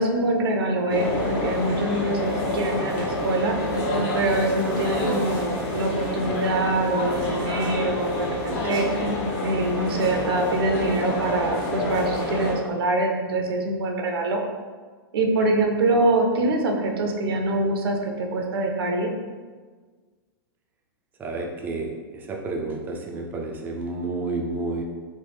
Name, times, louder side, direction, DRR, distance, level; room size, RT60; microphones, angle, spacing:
voice 1, 0.0-3.6 4.1-8.9 9.4-14.4 15.1-19.1, right 2 dB, 85° right, 2 dB, 0.5 m, -24 dB
sound 1, 0.9-12.5, left 1 dB, 45° left, 0.8 m, -27 dB
voice 2, 21.2-24.8, right 3 dB, 15° right, 1 dB, 0.3 m, -30 dB
3.1 x 2.1 x 3.3 m, 1.5 s
hypercardioid pair, 140°, 12 cm